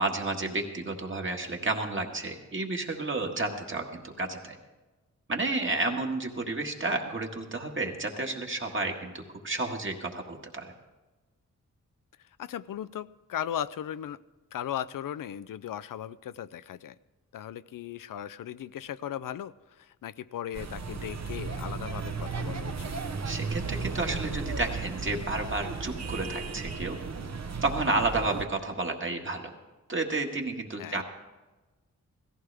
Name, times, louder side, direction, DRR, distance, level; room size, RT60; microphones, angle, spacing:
voice 1, 0.0-4.6 5.3-10.7 23.2-27.0 27.6-29.5 29.9-31.0, right 2 dB, 40° right, 2 dB, 1.7 m, -31 dB
voice 2, 12.4-14.2 14.5-17.0 17.3-22.9 30.8-31.0, left 10 dB, 90° left, 15 dB, 0.5 m, -37 dB
sound 1, 20.5-28.5, right 4 dB, 55° right, 0.9 m, -35 dB
17.5 x 14.5 x 3.4 m, 1.2 s
wide cardioid pair, 80°, 32 cm